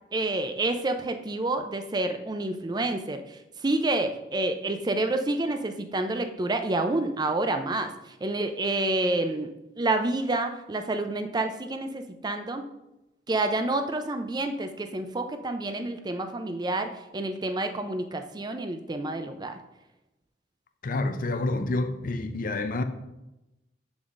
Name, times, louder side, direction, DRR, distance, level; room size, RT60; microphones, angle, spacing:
voice 1, 0.1-3.2 3.6-7.9 8.2-12.7 13.3-19.6, right 2 dB, 25° right, 0.5 m, -28 dB
voice 2, 20.8-22.8, left 2 dB, 50° left, 0.6 m, -28 dB
7.0 x 7.0 x 2.5 m
head